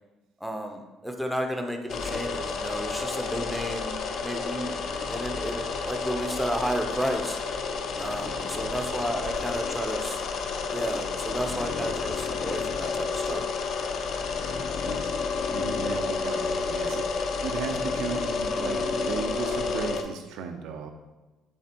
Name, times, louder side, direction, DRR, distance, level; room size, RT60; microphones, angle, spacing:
voice 1, 0.4-4.0 4.2-4.7 5.1-7.4 8.0-10.2 10.7-13.4, equal, ahead, 3 dB, 0.5 m, -32 dB
sound 1, 1.9-20.0, left 4 dB, 50° left, 0.5 m, -30 dB
voice 2, 9.1-9.5 14.4-17.1 17.4-20.9, right 6 dB, 85° right, 5 dB, 0.7 m, -36 dB
8.6 x 3.6 x 4.3 m, 1.1 s
cardioid pair, 170°, 0 cm